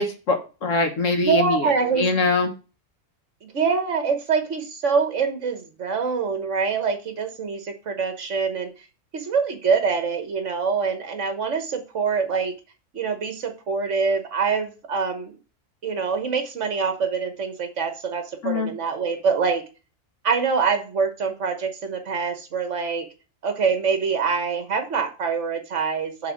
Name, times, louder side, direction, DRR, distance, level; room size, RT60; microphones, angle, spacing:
voice 1, 0.0-2.5 18.4-18.7, left 3 dB, 70° left, 5 dB, 1.6 m, -23 dB
voice 2, 1.2-2.1 3.5-8.7 9.1-12.5 12.9-15.4 15.8-19.6 20.2-23.1 23.4-26.3, right 5 dB, 65° right, 6 dB, 1.5 m, -25 dB
7.5 x 3.8 x 6.2 m, 0.33 s
omnidirectional pair, 1.4 m